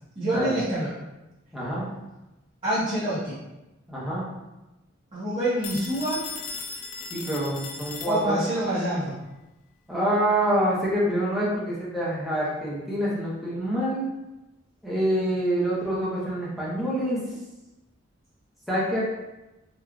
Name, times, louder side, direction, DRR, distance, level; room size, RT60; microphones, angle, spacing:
voice 1, 0.1-0.9 2.6-3.4 5.1-6.3 8.0-9.2, right 1 dB, 30° right, -13 dB, 0.8 m, -26 dB
voice 2, 1.5-1.9 3.9-4.2 7.1-8.4 9.9-14.1 14.8-17.2 18.7-19.0, right 1 dB, ahead, -9 dB, 0.7 m, -26 dB
Telephone, 5.6-8.6, left 4 dB, 80° left, 0.3 m, -37 dB
3.1 x 2.3 x 2.3 m, 1.0 s
head